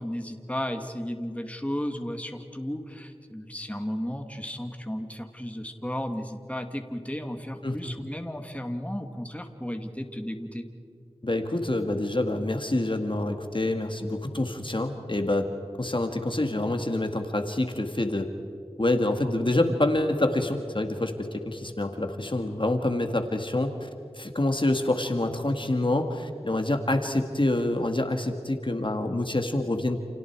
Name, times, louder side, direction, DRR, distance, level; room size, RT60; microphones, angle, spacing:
voice 1, 0.0-10.7, equal, 10° left, 5 dB, 2.4 m, -34 dB
voice 2, 11.2-15.5 15.8-18.3 18.8-23.9 24.2-30.0, left 1 dB, 50° left, 5 dB, 2.0 m, -27 dB
30.0 x 29.5 x 4.8 m, 2.4 s
wide cardioid pair, 40°, 11 cm